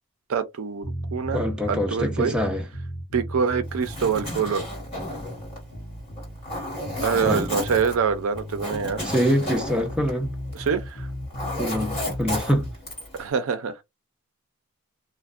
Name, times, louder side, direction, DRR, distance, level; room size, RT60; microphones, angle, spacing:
voice 1, 0.3-2.3 3.1-4.7 7.0-9.0 10.5-11.1 13.2-13.8, right 6 dB, 65° right, 0.4 m, -25 dB
sound 1, 0.8-12.8, equal, 55° left, 0.7 m, -36 dB
voice 2, 1.3-2.6 7.2-7.5 9.0-10.3 11.5-12.7, equal, 5° right, 0.4 m, -25 dB
Zipper (clothing), 3.7-10.8 11.1-13.2, left 1 dB, 25° left, 1.4 m, -33 dB
2.5 x 2.1 x 2.3 m
head